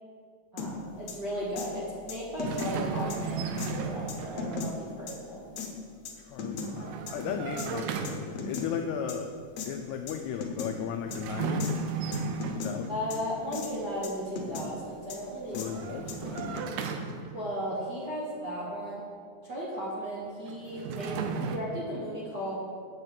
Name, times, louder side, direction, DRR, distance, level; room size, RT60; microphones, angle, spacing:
voice 1, 0.5-5.5 12.9-15.8 16.1-16.2 17.3-19.0 19.4-22.5, equal, 45° right, -6 dB, 1.5 m, -35 dB
sound 1, 0.6-0.7 1.1-1.2 1.6-1.7 2.1-2.7 3.1-3.2 3.6-3.7 4.1-4.7 5.1-5.2 5.6-5.7 6.1-6.7 7.1-7.2 7.6-7.7 8.0-8.7 9.1-9.2 9.6-9.7 10.1-10.2 10.4-10.7 11.1-11.2 11.6-11.7 12.1-12.7 13.1-13.2 13.5-13.7 14.0-14.7 15.1-15.2 15.5-15.7 16.1-16.6, left 6 dB, 65° left, 2.2 m, -36 dB
sound 2, 2.4-4.7 6.5-8.5 11.0-13.1 15.4-17.6 20.5-21.6, right 5 dB, 85° right, 2.3 m, -35 dB
voice 2, 6.2-9.3 9.7-13.3 15.5-17.1, left 8 dB, 85° left, 4 dB, 1.6 m, -37 dB
7.9 x 5.9 x 7.4 m, 2.2 s
omnidirectional pair, 3.8 m